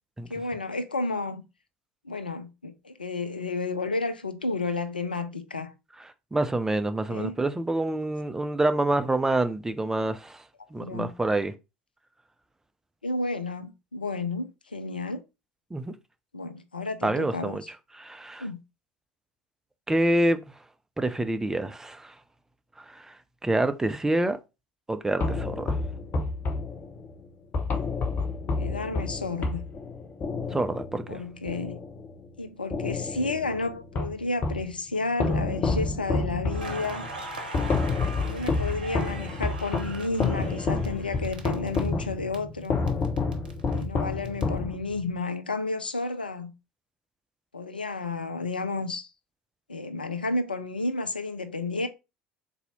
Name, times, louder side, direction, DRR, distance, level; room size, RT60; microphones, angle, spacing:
voice 1, 0.3-1.4 2.0-5.7 7.1-7.4 10.8-11.1 13.0-15.2 16.3-17.6 18.4-18.6 28.6-29.6 31.1-31.8 32.4-37.1 38.3-42.8 43.7-46.5 47.5-49.1 49.7-51.9, left 3 dB, 85° left, 0.4 m, -31 dB
voice 2, 6.3-10.4 10.7-11.5 15.7-15.9 17.0-17.6 18.0-18.5 19.9-20.4 21.0-22.1 22.9-23.1 23.4-24.4 24.9-25.8 30.5-31.2, right 2 dB, 10° right, 0.5 m, -27 dB
sound 1, 25.2-32.3 32.7-34.7 35.2-45.1, left 3 dB, 35° left, 1.0 m, -29 dB
Crackle, 36.5-42.4 42.6-44.4, right 3 dB, 75° right, 0.7 m, -41 dB
4.0 x 2.7 x 4.1 m
figure-of-eight pair, 65°, 5 cm